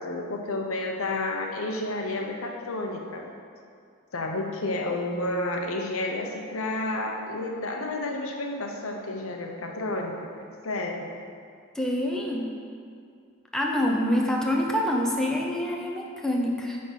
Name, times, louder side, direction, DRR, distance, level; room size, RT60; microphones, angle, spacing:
voice 1, 0.0-3.2 4.1-11.1, left 2 dB, 85° left, 2 dB, 0.9 m, -31 dB
voice 2, 11.7-12.5 13.5-16.8, left 1 dB, 5° left, -1 dB, 0.7 m, -26 dB
9.4 x 3.8 x 5.8 m, 2.3 s
head